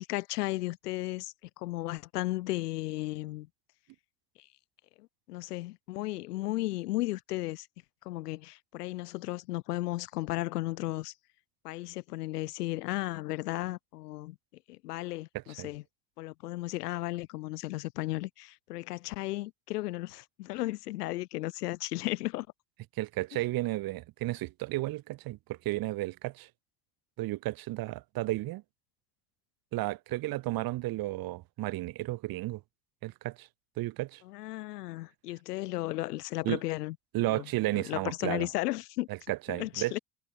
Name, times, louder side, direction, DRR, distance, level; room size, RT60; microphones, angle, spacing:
voice 1, 0.0-3.5 5.0-7.7 8.0-11.1 11.6-14.4 14.7-15.8 16.2-22.5 34.3-37.0 37.3-39.1 39.5-40.0, left 18 dB, 85° left, 0.8 m, -35 dB
voice 2, 23.0-26.5 27.2-28.6 29.7-32.6 33.0-33.5 33.8-34.2 36.4-36.6 37.1-38.5 39.1-40.0, right 18 dB, 50° right, 0.7 m, -33 dB
hypercardioid pair, 55°, 46 cm